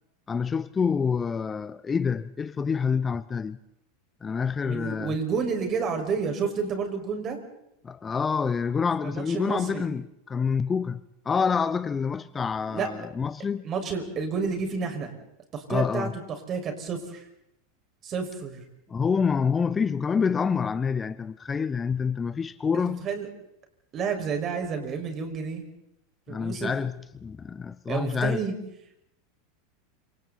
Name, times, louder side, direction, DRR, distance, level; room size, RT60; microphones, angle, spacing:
voice 1, 0.3-3.6 4.2-5.1 7.8-11.0 11.3-13.7 15.7-16.1 18.9-23.0 26.3-28.4, left 6 dB, 20° left, 0.8 m, -27 dB
voice 2, 4.6-7.4 9.0-9.8 12.7-12.9 13.6-15.1 15.5-17.2 18.0-18.6 23.0-23.3 23.9-25.7 26.3-26.8 27.9-28.5, right 5 dB, 35° right, 5.8 m, -30 dB
28.5 x 27.0 x 4.3 m
hypercardioid pair, 90°, 0 cm